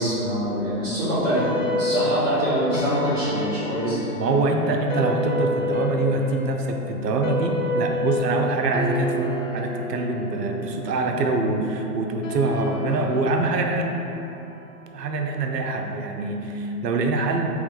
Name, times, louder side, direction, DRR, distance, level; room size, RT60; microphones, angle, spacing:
voice 1, 0.0-4.0, equal, 5° right, -28 dB, 0.9 m, -24 dB
sound 1, 1.3-15.9, left 2 dB, 55° left, 0.5 m, -30 dB
voice 2, 4.2-13.8 14.9-17.6, right 3 dB, 90° right, 3 dB, 0.7 m, -24 dB
3.2 x 3.1 x 3.9 m, 3.0 s
hypercardioid pair, 180°, 47 cm